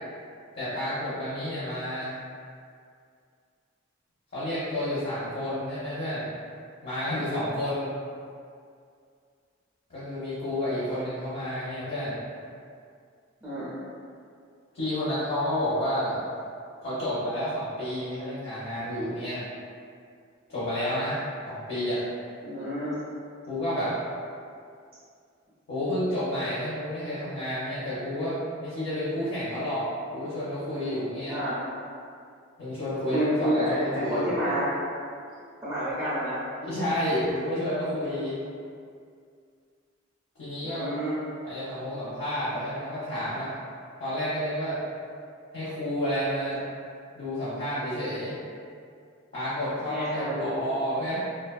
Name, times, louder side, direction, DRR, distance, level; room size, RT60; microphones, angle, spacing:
voice 1, 0.5-2.2 4.3-6.3 6.8-7.9 9.9-12.2 14.7-16.2 16.8-19.4 20.5-21.2 21.5-22.0 23.5-23.9 25.7-31.4 32.6-34.4 36.6-38.4 40.4-40.9 41.4-43.5 44.0-44.8 45.5-46.6 47.1-48.3 49.3-51.2, left 1 dB, 55° left, -12 dB, 0.8 m, -30 dB
voice 2, 13.4-13.7 22.4-22.9 31.3-31.5 33.1-34.7 35.6-36.4 40.6-41.2 49.9-50.6, right 1 dB, 10° right, -12 dB, 0.5 m, -29 dB
2.7 x 2.3 x 2.3 m, 2.3 s
head